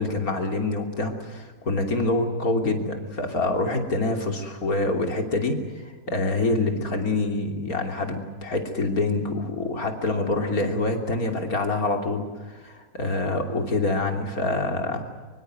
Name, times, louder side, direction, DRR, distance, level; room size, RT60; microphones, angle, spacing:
voice 1, 0.0-15.1, left 2 dB, 65° left, 5 dB, 3.5 m, -26 dB
24.0 x 23.5 x 7.9 m, 1.4 s
omnidirectional pair, 1.6 m